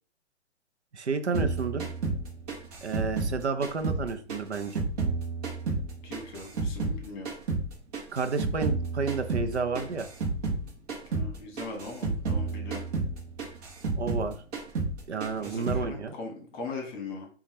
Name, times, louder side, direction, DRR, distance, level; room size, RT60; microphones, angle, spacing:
voice 1, 0.9-1.9 2.8-4.8 8.1-10.1 14.0-14.4 15.1-16.1, right 4 dB, 75° right, 9 dB, 0.7 m, -31 dB
sound 1, 1.3-4.0 4.3-7.0 7.3-10.6 10.9-11.3 11.6-14.3 14.5-15.0 15.2-15.9, right 3 dB, 35° right, 1.1 m, -31 dB
voice 2, 6.0-7.3 11.1-12.8 15.3-17.3, left 3 dB, 20° left, 2 dB, 1.5 m, -40 dB
5.2 x 2.5 x 3.2 m, 0.40 s
figure-of-eight pair, 120°, 34 cm